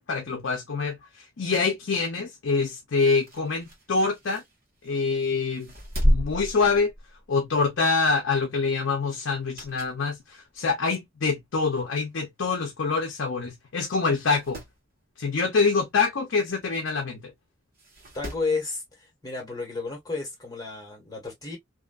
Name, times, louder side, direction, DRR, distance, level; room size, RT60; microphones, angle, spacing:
voice 1, 0.0-4.4 4.8-5.7 6.0-6.9 7.3-14.6 15.2-17.3, left 4 dB, 65° left, 0.6 m, -25 dB
sound 1, 3.1-5.0 5.5-7.4 7.8-8.0 9.3-10.1 10.5-10.6 11.5-11.6 11.9-12.0 12.1-12.2 13.1-13.3 13.6-13.7 14.1-14.8 16.6-16.7 17.7-18.6 19.9-20.0, equal, 50° right, 1.3 m, -31 dB
voice 2, 18.1-21.6, left 3 dB, 20° left, 1.3 m, -32 dB
2.7 x 2.5 x 2.2 m
head